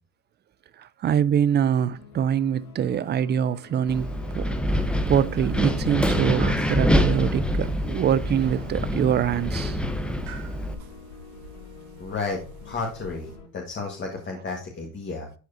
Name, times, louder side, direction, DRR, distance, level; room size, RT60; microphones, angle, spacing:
voice 1, 0.8-4.5 4.7-9.8, right 9 dB, 25° right, 0.5 m, -24 dB
sound 1, 1.5-13.5, left 4 dB, 85° left, 1.7 m, -48 dB
Wind, 3.9-10.7, equal, ahead, 0.8 m, -25 dB
sound 2, 4.6-13.4, equal, 70° right, 1.9 m, -45 dB
voice 2, 12.0-15.3, left 4 dB, 25° left, 1.7 m, -32 dB
11.5 x 4.7 x 2.7 m
hypercardioid pair, 95°, 44 cm